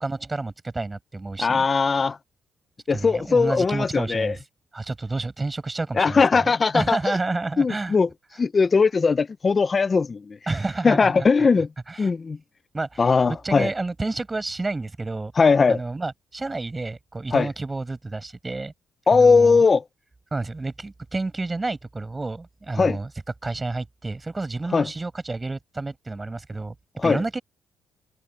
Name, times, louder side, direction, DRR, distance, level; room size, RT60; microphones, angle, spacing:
voice 1, 0.0-1.6 2.9-4.4 4.7-8.0 10.5-11.5 11.9-12.1 12.7-15.3 15.7-18.7 19.1-19.6 20.3-23.1 23.4-26.7 27.0-27.4, right 3 dB, 20° right, 6.6 m, -30 dB
voice 2, 1.4-2.2 2.9-4.4 6.0-7.2 7.6-8.1 8.4-10.2 10.8-11.7 12.0-12.4 13.0-13.7 15.4-15.8 17.3-17.5 19.1-19.8 22.8-23.0 24.7-24.9 27.0-27.2, left 4 dB, 35° left, 0.5 m, -19 dB
cardioid pair, 90°, 0 cm